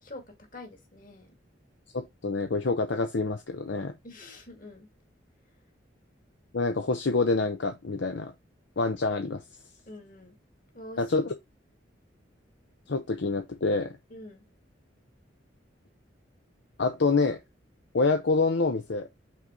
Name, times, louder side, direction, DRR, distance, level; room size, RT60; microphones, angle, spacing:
voice 1, 0.0-1.3 4.0-4.9 9.9-10.4 10.7-11.3 14.1-14.4, left 1 dB, 45° left, 2.0 m, -46 dB
voice 2, 1.9-3.9 6.5-8.3 8.8-9.4 11.0-11.3 12.9-14.0 16.8-17.4 17.9-19.1, left 3 dB, 70° left, 0.7 m, -26 dB
5.8 x 3.9 x 4.3 m
head